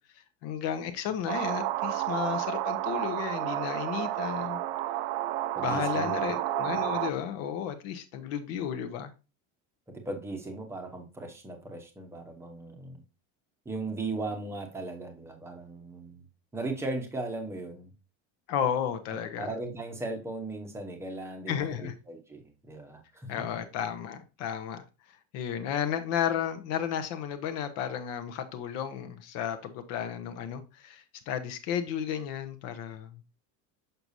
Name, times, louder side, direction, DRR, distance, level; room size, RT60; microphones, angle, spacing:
voice 1, 0.1-4.6 5.6-9.1 18.5-19.5 21.5-21.9 23.3-33.2, left 9 dB, 45° left, 0.8 m, -33 dB
sound 1, 1.3-7.1, right 14 dB, 60° right, 0.6 m, -31 dB
voice 2, 5.6-6.2 10.0-13.0 13.6-16.2 16.5-17.9 19.4-23.3, right 2 dB, 5° right, 0.9 m, -37 dB
6.6 x 6.0 x 2.6 m
cardioid pair, 180°, 34 cm